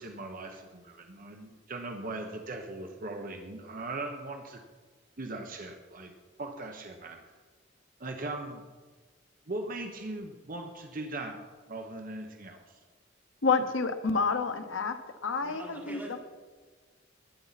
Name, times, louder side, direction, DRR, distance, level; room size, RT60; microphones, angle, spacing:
voice 1, 0.0-4.6 5.2-6.1 6.4-7.2 8.0-8.6 9.5-11.4 11.7-12.6, right 2 dB, 45° right, 4 dB, 1.0 m, -39 dB
voice 2, 13.4-16.2, left 4 dB, 90° left, 8 dB, 1.0 m, -29 dB
voice 3, 15.4-16.2, right 1 dB, 10° right, -6 dB, 4.3 m, -43 dB
20.0 x 9.0 x 4.1 m, 1.4 s
head